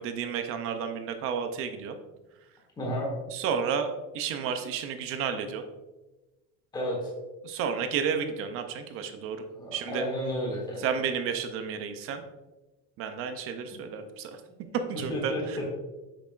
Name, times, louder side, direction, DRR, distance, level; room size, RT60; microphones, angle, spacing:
voice 1, 0.0-2.0 3.3-5.6 7.4-9.4 9.7-10.0 10.8-12.2 13.0-14.4 14.9-15.6, right 6 dB, 40° right, 7 dB, 0.5 m, -31 dB
voice 2, 2.8-3.1 6.7-7.1 9.5-10.9 14.5-14.6 15.1-15.8, equal, 10° left, -2 dB, 1.2 m, -32 dB
8.2 x 5.9 x 2.4 m, 1.1 s
cardioid pair, 180°, 36 cm